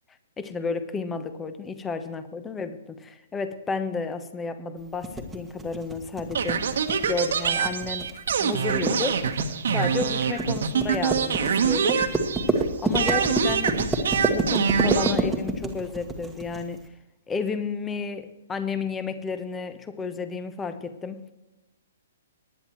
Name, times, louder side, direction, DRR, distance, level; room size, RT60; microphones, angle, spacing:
voice 1, 0.4-6.7 7.1-8.1 8.4-9.3 9.7-12.1 12.8-16.9 17.3-21.3, left 4 dB, 15° left, 1.0 m, -32 dB
sound 1, 5.0-16.6, right 2 dB, 5° right, 1.5 m, -28 dB
sound 2, 6.3-12.6 12.9-15.1, right 7 dB, 60° right, 1.3 m, -25 dB
19.0 x 10.5 x 3.2 m
figure-of-eight pair, 120°, 0 cm